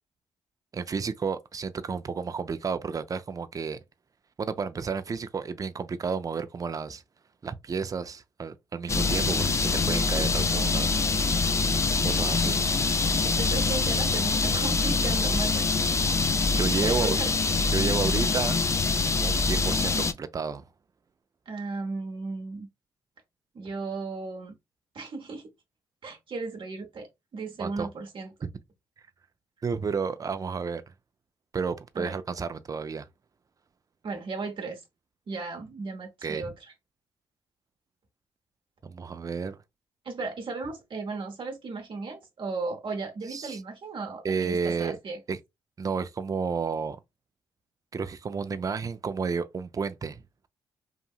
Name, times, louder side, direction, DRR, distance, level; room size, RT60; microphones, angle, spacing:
voice 1, 0.7-3.8 4.4-7.0 7.4-11.0 12.0-12.6 16.5-17.2 17.7-18.6 19.2-20.7 27.6-27.9 28.4-28.5 29.6-30.8 31.5-33.1 36.2-36.5 38.8-39.6 43.3-43.6 44.2-45.0 45.3-45.4 45.8-47.0 47.9-50.5, right 5 dB, 35° right, 0.4 m, -31 dB
sound 1, 8.9-20.1, left 4 dB, 30° left, 0.4 m, -25 dB
voice 2, 12.4-12.8 13.0-16.1 16.8-17.7 21.5-22.7 23.5-24.6 24.9-25.5 26.0-28.3 31.9-32.2 34.0-34.8 35.3-36.5 40.0-45.2, right 3 dB, 55° right, 0.9 m, -36 dB
2.8 x 2.6 x 2.4 m
hypercardioid pair, 45°, 10 cm